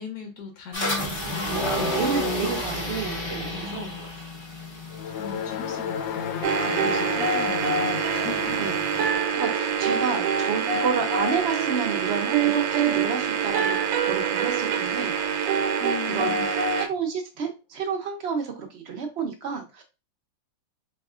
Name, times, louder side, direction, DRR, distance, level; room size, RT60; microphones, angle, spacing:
voice 1, 0.0-2.0 2.3-2.5 3.5-4.0 5.2-8.6 15.8-16.5, left 5 dB, 65° left, 1.3 m, -38 dB
sound 1, 0.7-9.1, left 1 dB, 25° left, 0.6 m, -32 dB
voice 2, 1.7-4.3 6.8-6.9 8.6-8.9 9.3-15.1 16.1-19.8, right 6 dB, 70° right, 0.6 m, -31 dB
sound 2, 4.9-13.3, left 8 dB, 80° left, 1.3 m, -36 dB
sound 3, 6.4-16.9, right 6 dB, 85° right, 1.4 m, -25 dB
4.2 x 3.4 x 2.4 m
omnidirectional pair, 2.0 m